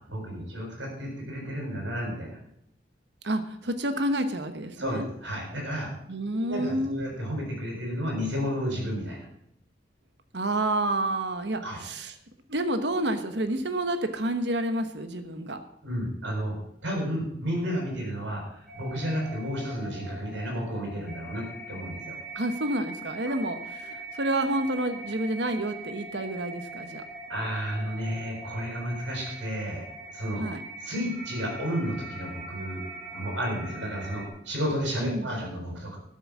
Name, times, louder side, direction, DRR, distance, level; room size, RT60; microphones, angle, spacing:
voice 1, 0.1-2.4 4.8-5.9 6.3-9.3 11.6-11.8 15.8-16.5 16.8-22.2 23.2-23.3 27.3-29.8 30.1-30.4 30.8-32.8 33.1-36.0, equal, 90° right, -1 dB, 6.9 m, -32 dB
voice 2, 3.2-5.1 6.1-7.0 10.3-12.1 12.5-15.6 22.3-27.0 30.4-30.6 35.0-35.3, right 1 dB, 70° right, 9 dB, 1.2 m, -29 dB
sound 1, 18.7-34.3, right 2 dB, 5° left, 2.8 m, -42 dB
12.5 x 7.9 x 7.3 m, 0.75 s
head